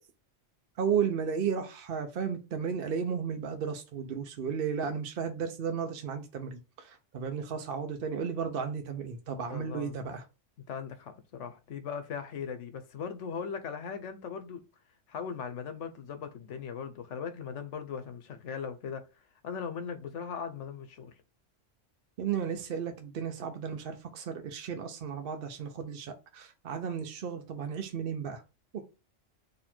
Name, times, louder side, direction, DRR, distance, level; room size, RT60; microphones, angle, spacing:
voice 1, 0.8-10.2 22.2-28.4 28.7-28.8, right 7 dB, 55° right, 0.8 m, -34 dB
voice 2, 9.5-9.9 10.7-14.6 15.1-19.1 19.4-21.2, left 6 dB, 75° left, 1.0 m, -39 dB
4.2 x 2.8 x 4.3 m
omnidirectional pair, 1.2 m